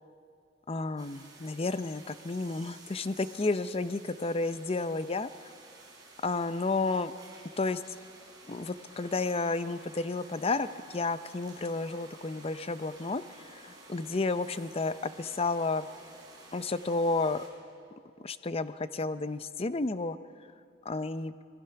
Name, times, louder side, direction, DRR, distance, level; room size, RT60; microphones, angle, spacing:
voice 1, 0.7-5.5 6.2-7.1 7.6-7.8 8.5-15.9 16.5-17.4 18.2-20.2 20.8-21.3, left 3 dB, 30° left, 13 dB, 0.6 m, -31 dB
sound 1, 1.0-17.5, right 2 dB, 20° right, 4.3 m, -53 dB
26.0 x 20.5 x 5.8 m, 2.4 s
head